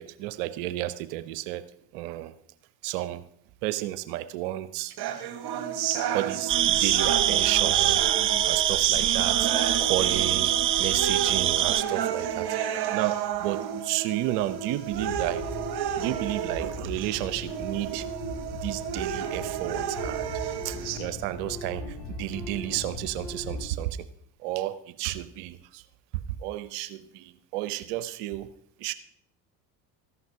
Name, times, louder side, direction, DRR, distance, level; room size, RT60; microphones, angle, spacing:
voice 1, 0.0-1.7 1.9-2.3 2.8-3.2 3.6-5.0 6.1-8.0 8.4-9.5 9.8-12.5 12.9-15.4 16.0-18.1 18.6-20.3 20.6-24.0 24.4-25.8 26.4-28.5 28.8-28.9, right 15 dB, 70° right, 14 dB, 0.8 m, -32 dB
sound 1, 5.0-21.0, right 9 dB, 50° right, 1.6 m, -31 dB
sound 2, 6.5-11.8, right 11 dB, 30° right, 0.4 m, -24 dB
sound 3, 14.9-23.6, left 2 dB, 75° left, 5.0 m, -39 dB
14.0 x 11.0 x 2.8 m, 0.67 s
hypercardioid pair, 65°, 49 cm